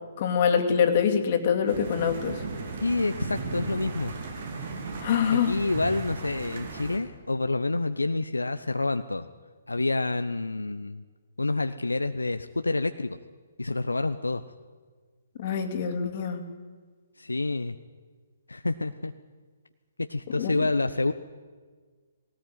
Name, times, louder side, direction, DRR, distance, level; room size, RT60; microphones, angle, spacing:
voice 1, 0.2-2.4 5.0-5.6 15.4-16.4 20.3-20.7, left 7 dB, 40° left, 6 dB, 2.5 m, -25 dB
sound 1, 1.7-7.0, right 3 dB, 50° right, 3.8 m, -36 dB
voice 2, 2.8-4.1 5.3-9.3 9.7-11.0 11.4-13.2 13.6-14.4 17.2-17.7 18.5-19.1 20.1-21.1, left 2 dB, 80° left, 9 dB, 0.7 m, -28 dB
19.0 x 18.0 x 9.3 m, 1.5 s
figure-of-eight pair, 130°, 0 cm